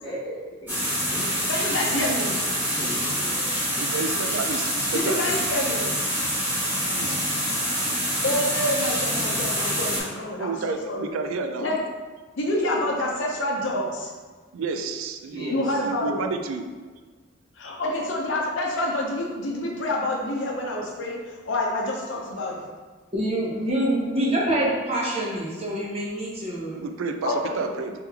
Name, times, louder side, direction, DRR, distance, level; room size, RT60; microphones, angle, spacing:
voice 1, 0.0-1.3 2.7-3.9 15.3-15.8, equal, 20° left, -8 dB, 1.2 m, -37 dB
sound 1, 0.7-10.0, equal, 10° right, 1.2 m, -26 dB
voice 2, 1.5-2.4 4.9-5.9 8.2-11.1 11.6-11.8 12.4-14.1 15.5-16.2 17.6-21.2 21.4-22.6 27.2-27.7, left 1 dB, 60° left, -1 dB, 0.6 m, -27 dB
voice 3, 3.8-5.2 6.9-7.1 7.7-7.9 10.4-11.7 14.5-16.7 26.7-28.0, right 4 dB, 85° right, 6 dB, 0.4 m, -31 dB
voice 4, 23.1-26.8, right 1 dB, 30° right, -4 dB, 0.7 m, -26 dB
3.3 x 3.2 x 3.4 m, 1.4 s
head